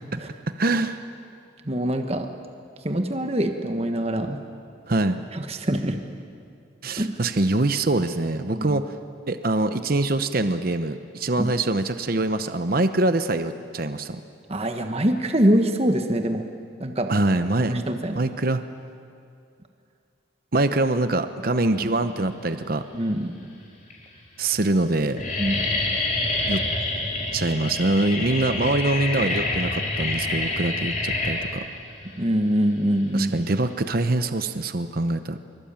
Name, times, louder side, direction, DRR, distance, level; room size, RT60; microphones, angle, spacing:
voice 1, 0.6-1.0 4.9-5.2 6.8-8.8 9.3-14.2 17.1-17.8 18.1-18.6 20.5-22.8 24.4-25.2 26.5-26.6 27.3-31.6 33.1-35.4, right 2 dB, 45° right, 10 dB, 0.9 m, -24 dB
voice 2, 1.6-2.3 2.8-4.4 5.3-6.0 7.0-7.1 8.6-8.8 11.4-11.5 14.5-16.4 16.8-17.1 17.7-18.2 22.9-23.4 25.4-25.7 32.2-33.3, equal, 30° right, 5 dB, 1.3 m, -24 dB
sound 1, 22.6-23.1 23.8-23.9 24.2-24.6 24.8-33.8, left 2 dB, 40° left, 5.4 m, -27 dB
24.5 x 24.0 x 8.9 m, 2.4 s
head